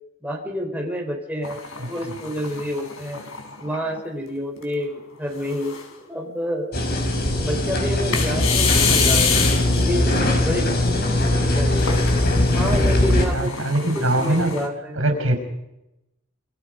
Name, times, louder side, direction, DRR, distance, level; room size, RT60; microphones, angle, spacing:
voice 1, 0.2-1.6 1.9-3.2 3.6-5.7 6.1-6.9 7.4-9.3 9.8-12.1 12.5-13.5 13.9-15.0, equal, 10° right, 0 dB, 4.3 m, -29 dB
sound 1, 1.4-4.0 4.6-4.7 5.3-6.0 8.1-9.9 11.8-14.7, left 6 dB, 85° left, 4.8 m, -27 dB
voice 2, 1.8-2.2 13.3-14.5 15.0-15.4, right 1 dB, 75° right, 5 dB, 5.4 m, -22 dB
sound 2, 6.7-13.3, left 1 dB, 50° left, 5.4 m, -20 dB
27.0 x 22.5 x 5.2 m, 0.89 s
head